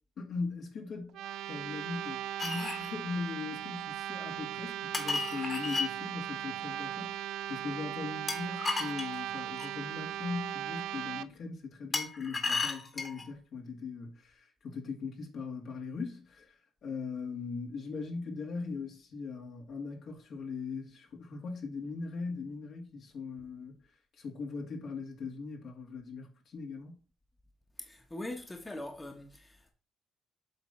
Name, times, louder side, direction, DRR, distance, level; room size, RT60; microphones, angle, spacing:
voice 1, 0.2-1.2 1.5-23.9 24.1-27.0, left 4 dB, 65° left, 2.2 m, -40 dB
sound 1, 1.1-11.3, right 11 dB, 80° right, 0.4 m, -38 dB
sound 2, 2.4-2.9 4.9-5.9 8.3-9.7 11.9-13.3, left 4 dB, 35° left, 1.9 m, -34 dB
voice 2, 27.8-29.7, left 1 dB, 15° left, 1.3 m, -42 dB
7.9 x 3.7 x 5.6 m
cardioid pair, 90°, 0 cm